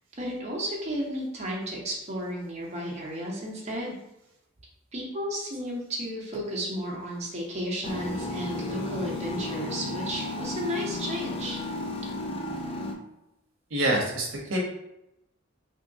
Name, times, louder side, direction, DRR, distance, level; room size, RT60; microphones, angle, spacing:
voice 1, 0.2-4.0 4.9-11.6, equal, 35° right, -4 dB, 0.8 m, -33 dB
sound 1, 7.8-12.9, left 2 dB, 30° left, 0.4 m, -33 dB
voice 2, 13.7-14.6, right 1 dB, 70° right, -2 dB, 0.8 m, -26 dB
3.4 x 3.0 x 2.7 m, 0.86 s
head